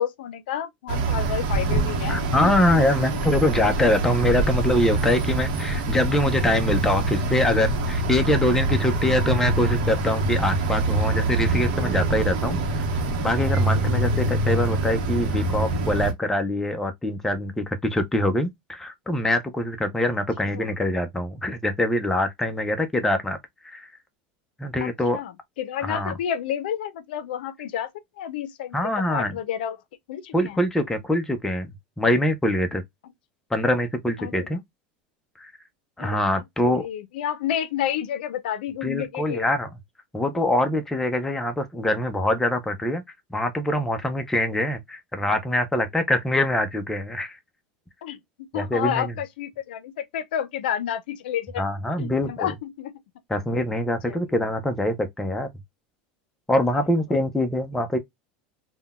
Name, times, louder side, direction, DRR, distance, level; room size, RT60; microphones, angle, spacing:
voice 1, 0.0-2.5 3.8-3.9 4.3-4.4 20.5-20.8 24.8-25.3 25.6-27.9 28.2-28.8 29.1-29.8 30.1-30.6 34.2-34.6 36.0-39.5 48.0-51.6 52.0-52.9 54.1-54.2 56.7-56.8, left 10 dB, 90° left, 0.5 m, -30 dB
sound 1, 0.9-16.1, right 2 dB, 75° right, 0.8 m, -24 dB
voice 2, 2.1-12.8 13.2-23.4 23.6-23.9 24.6-25.2 25.8-26.2 28.7-29.3 30.3-31.7 32.0-32.8 33.5-34.6 35.4-35.5 36.0-36.8 38.8-39.7 40.1-43.0 43.3-47.4 48.5-49.1 51.6-52.5 53.3-55.5 56.5-58.0, left 1 dB, 5° left, 0.5 m, -24 dB
3.7 x 2.2 x 2.2 m
supercardioid pair, 130°, 5 cm